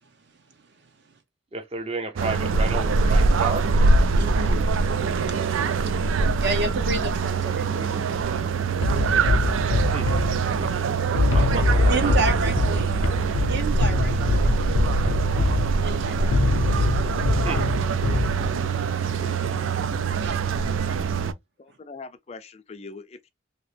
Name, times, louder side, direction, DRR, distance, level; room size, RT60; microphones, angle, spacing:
voice 1, 1.5-3.6 9.9-10.1 10.6-10.8 11.3-12.1 17.4-17.6, right 3 dB, 30° right, 0.6 m, -31 dB
sound 1, 2.2-21.3, right 4 dB, 75° right, 0.4 m, -24 dB
voice 2, 4.1-4.7 5.1-5.7 6.4-8.1 11.3-13.0 13.5-15.0 15.8-16.6 17.0-17.3 20.2-20.5, right 3 dB, 55° right, 0.8 m, -31 dB
sound 2, 8.8-18.8, left 2 dB, 75° left, 0.5 m, -24 dB
voice 3, 21.6-23.3, left 4 dB, 30° left, 0.3 m, -42 dB
3.0 x 2.9 x 3.2 m
head